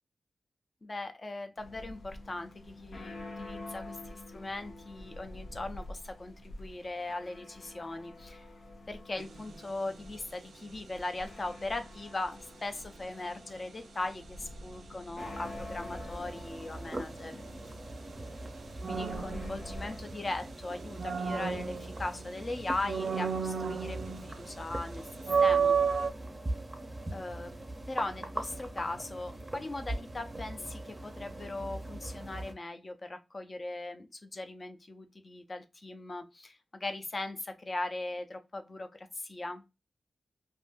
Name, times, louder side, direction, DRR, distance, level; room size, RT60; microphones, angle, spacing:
voice 1, 0.8-8.4 8.9-17.3 18.9-25.0 25.4-25.8 27.1-27.5 27.9-39.6, left 2 dB, 30° left, 0.5 m, -39 dB
sound 1, 1.6-20.0, left 1 dB, 75° left, 0.6 m, -47 dB
sound 2, 9.2-9.5 18.8-20.3 20.7-22.3 22.8-24.4 24.7-24.8 25.2-26.1, right 6 dB, 75° right, 0.3 m, -30 dB
sound 3, 15.2-32.5, right 1 dB, 20° right, 0.6 m, -42 dB
2.6 x 2.5 x 3.4 m
wide cardioid pair, 140°, 0 cm